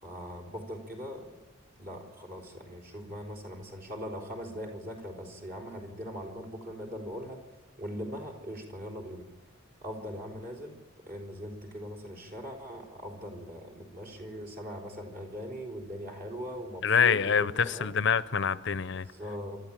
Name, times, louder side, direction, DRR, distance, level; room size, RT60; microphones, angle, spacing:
voice 1, 0.0-1.2 1.8-7.4 7.8-9.2 9.8-10.8 11.1-17.9 19.1-19.6, equal, 45° right, 4.1 m, -40 dB
voice 2, 16.8-19.1, left 6 dB, 60° left, 0.6 m, -26 dB
27.5 x 12.5 x 9.1 m
head